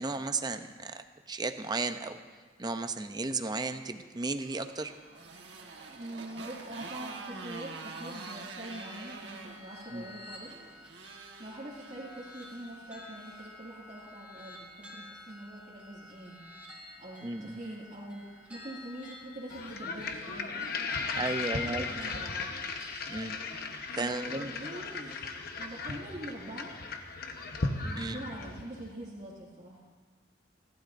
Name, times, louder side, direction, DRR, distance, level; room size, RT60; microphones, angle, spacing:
voice 1, 0.0-2.2 2.6-4.9 9.9-10.0 17.2-17.6 21.1-21.9 23.1-23.4 24.0-24.5 28.0-28.2, right 3 dB, 25° right, 8 dB, 0.6 m, -34 dB
Motorcycle, 4.1-13.5, right 3 dB, 75° right, 1.4 m, -46 dB
sound 1, 4.8-23.2, left 1 dB, 10° right, 3.5 m, -52 dB
voice 2, 5.9-10.5 11.4-16.4 17.0-22.5 24.0-25.2 25.6-26.7 27.8-29.9, right 1 dB, 40° right, -7 dB, 2.2 m, -44 dB
sound 2, 19.5-28.8, left 3 dB, 55° left, 1.1 m, -36 dB
30.0 x 12.0 x 2.6 m, 1.5 s
head